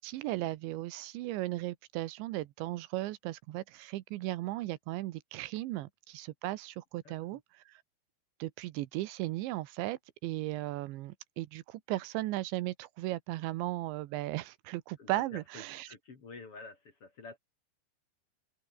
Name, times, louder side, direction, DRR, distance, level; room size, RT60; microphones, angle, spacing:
voice 1, 0.0-7.4 8.4-15.9, right 17 dB, 80° right, 3.3 m, -36 dB
voice 2, 7.0-7.4 15.0-17.4, left 3 dB, 35° left, 3.2 m, -49 dB
omnidirectional pair, 5.2 m